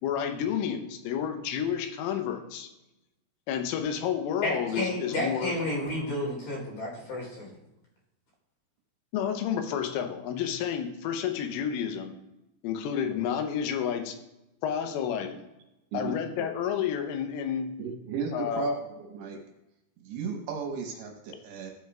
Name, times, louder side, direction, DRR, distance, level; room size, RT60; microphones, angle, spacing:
voice 1, 0.0-2.7 3.5-5.6 9.1-12.2 12.6-14.2 14.6-15.5 15.9-17.7 18.3-18.8, left 8 dB, 85° left, 7 dB, 3.4 m, -30 dB
voice 2, 4.4-7.5, left 1 dB, 50° left, -3 dB, 4.2 m, -31 dB
voice 3, 17.8-19.4 20.0-21.7, right 6 dB, 75° right, 2 dB, 3.0 m, -35 dB
14.5 x 8.2 x 2.4 m, 0.93 s
omnidirectional pair, 5.7 m